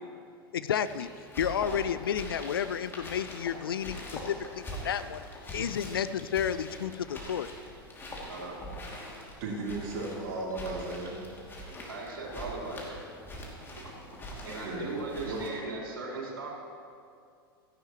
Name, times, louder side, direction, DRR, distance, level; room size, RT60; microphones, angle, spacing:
voice 1, 0.5-1.1 1.4-5.2 5.5-7.5, left 8 dB, 70° left, 14 dB, 0.5 m, -31 dB
sound 1, 0.8-15.5, equal, 15° left, 2.7 m, -43 dB
voice 2, 8.3-8.6 11.9-13.0 14.4-16.5, right 3 dB, 70° right, -4 dB, 4.0 m, -38 dB
voice 3, 9.4-11.2 14.6-14.9 15.2-15.4, right 2 dB, 45° right, -5 dB, 3.9 m, -35 dB
16.5 x 14.5 x 3.1 m, 2.3 s
figure-of-eight pair, 90°, 12 cm